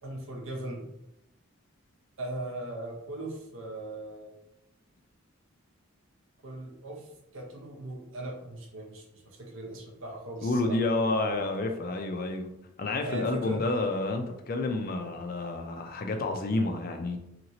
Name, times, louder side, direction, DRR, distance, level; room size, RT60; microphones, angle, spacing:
voice 1, 0.0-0.8 2.2-4.3 6.4-10.8 13.0-13.7, right 1 dB, 65° right, 1 dB, 0.7 m, -39 dB
voice 2, 10.4-12.5 12.8-17.2, left 2 dB, 40° left, 5 dB, 0.4 m, -29 dB
2.9 x 2.8 x 2.7 m, 0.84 s
head